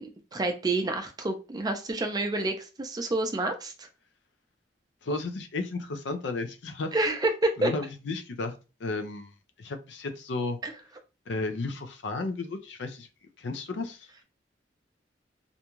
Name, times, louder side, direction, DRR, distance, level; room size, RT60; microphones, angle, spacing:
voice 1, 0.0-3.9 6.9-7.7 10.6-10.7, right 2 dB, 20° right, 0.4 m, -28 dB
voice 2, 5.0-6.9 7.6-8.5 8.8-9.3 9.6-10.6 11.3-13.1 13.4-14.2, left 3 dB, 70° left, 0.5 m, -33 dB
2.5 x 2.2 x 2.9 m
head